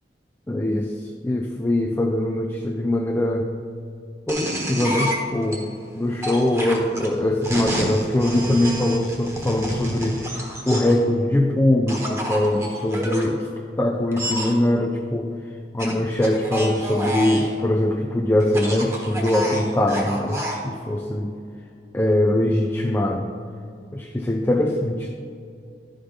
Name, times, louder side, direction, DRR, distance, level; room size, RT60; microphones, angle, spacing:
voice 1, 0.5-3.5 4.3-5.7 5.9-13.5 13.8-15.3 15.7-21.3 21.9-23.3 23.9-25.1, left 1 dB, 15° left, 2 dB, 0.4 m, -22 dB
sound 1, 4.3-5.6 6.2-11.0 11.9-13.3 14.1-14.5 15.8-17.5 18.4-20.6, equal, 15° right, 1.3 m, -29 dB
11.5 x 5.2 x 5.2 m, 2.4 s
head